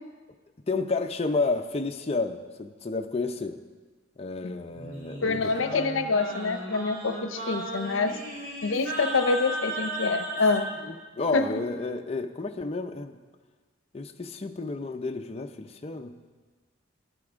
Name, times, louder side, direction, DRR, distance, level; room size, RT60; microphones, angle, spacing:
voice 1, 0.7-3.6 4.2-5.9 10.9-13.2 13.9-16.2, left 3 dB, 30° left, 6 dB, 0.5 m, -31 dB
Singing, 4.7-10.8, equal, 70° right, 2.6 m, -35 dB
voice 2, 5.2-8.2 8.6-10.7 11.3-11.6, left 3 dB, 75° left, 9 dB, 0.7 m, -26 dB
12.0 x 11.5 x 3.6 m, 1.4 s
head